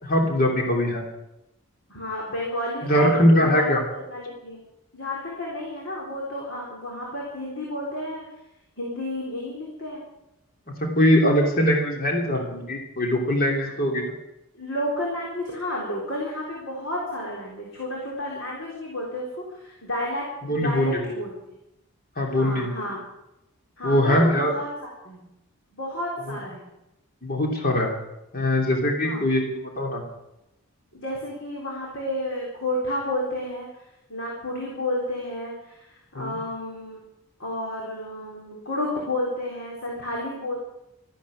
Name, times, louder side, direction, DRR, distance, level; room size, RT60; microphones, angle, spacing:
voice 1, 0.0-1.1 2.8-3.8 11.0-14.1 20.4-21.0 22.2-22.7 23.8-24.6 26.3-26.4 27.2-27.9 28.3-30.0 36.1-36.4, equal, 40° left, 1 dB, 3.0 m, -21 dB
voice 2, 1.9-3.8 4.1-4.6 4.9-8.3 8.8-10.0 13.6-13.7 14.5-21.3 22.3-23.0 23.8-25.3 25.7-26.7 29.0-29.3 30.9-33.8 34.1-37.0 37.4-40.6, left 1 dB, 60° left, -3 dB, 4.0 m, -31 dB
14.0 x 11.5 x 8.5 m, 0.91 s
head